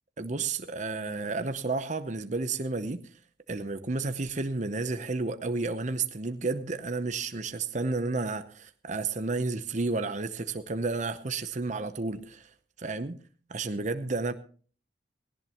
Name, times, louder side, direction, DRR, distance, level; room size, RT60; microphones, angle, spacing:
voice 1, 0.2-3.0 3.5-12.5 12.8-13.2 13.5-14.3, right 3 dB, 40° right, 9 dB, 0.8 m, -31 dB
18.0 x 18.0 x 3.0 m, 0.41 s
head